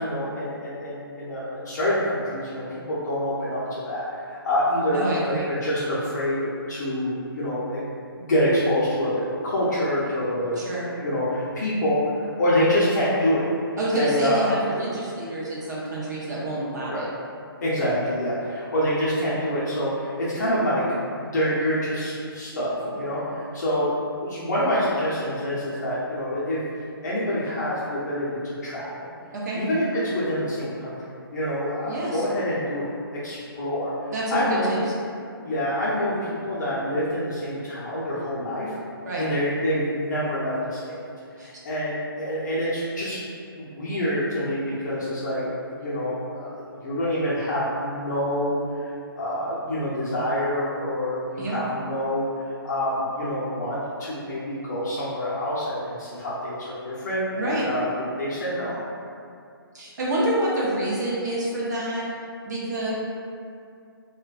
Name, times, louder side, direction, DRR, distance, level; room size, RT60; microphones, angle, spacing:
voice 1, 0.0-7.8 8.2-10.6 10.9-13.5 13.9-14.5 16.9-17.0 17.6-20.8 21.2-29.1 29.5-31.0 31.3-34.7 35.4-38.7 39.2-41.0 41.4-43.2 43.6-45.4 45.7-48.9 49.2-58.8, equal, 45° left, -9 dB, 0.5 m, -26 dB
voice 2, 4.9-5.5 10.6-10.9 13.8-17.1 29.3-29.6 31.9-32.2 34.1-34.8 39.0-39.2 41.4-41.5 51.4-51.6 57.4-57.7 59.7-62.1 62.4-62.9, right 1 dB, 45° right, -6 dB, 0.5 m, -27 dB
2.5 x 2.1 x 2.3 m, 2.5 s
hypercardioid pair, 165°, 13 cm